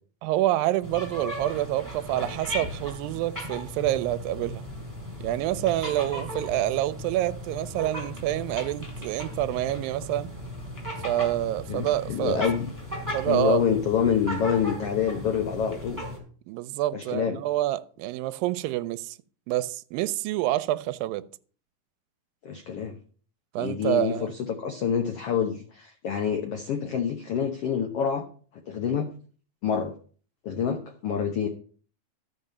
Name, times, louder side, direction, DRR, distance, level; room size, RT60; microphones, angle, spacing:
voice 1, 0.2-4.6 5.2-10.3 11.0-12.4 13.1-13.6 16.5-19.2 19.5-21.3 23.5-24.3 31.4-31.5, right 14 dB, 80° right, 2.3 m, -27 dB
sound 1, 0.8-16.2, equal, 5° right, 4.1 m, -37 dB
voice 2, 11.7-12.7 13.2-16.0 16.9-17.4 22.4-23.0 23.6-28.2 28.7-29.1 29.6-29.9 30.4-31.5, left 7 dB, 75° left, 1.3 m, -27 dB
13.5 x 5.5 x 6.7 m
omnidirectional pair, 4.1 m